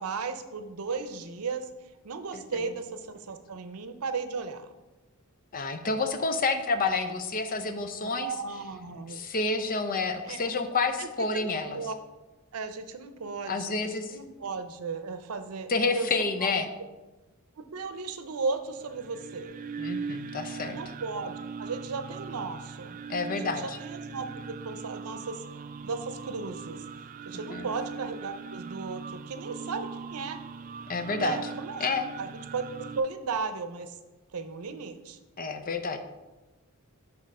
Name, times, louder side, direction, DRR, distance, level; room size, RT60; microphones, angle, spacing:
voice 1, 0.0-1.7 2.0-4.7 7.1-7.2 8.0-9.2 10.2-10.5 11.0-11.1 11.3-11.9 12.5-16.1 16.4-16.6 17.6-19.6 20.7-23.0 23.3-25.4 25.8-26.8 27.3-30.4 31.2-32.6 33.0-34.0 34.3-35.2, right 4 dB, 85° right, 9 dB, 0.6 m, -35 dB
voice 2, 5.5-8.3 9.1-11.8 13.5-14.2 15.7-16.7 19.8-20.8 23.1-23.8 27.5-27.7 30.9-31.4 31.8-32.1 35.4-36.0, left 3 dB, 40° left, 7 dB, 0.6 m, -29 dB
sound 1, 18.7-33.0, right 5 dB, 40° right, 0.3 m, -40 dB
6.3 x 4.2 x 5.4 m, 1.1 s
head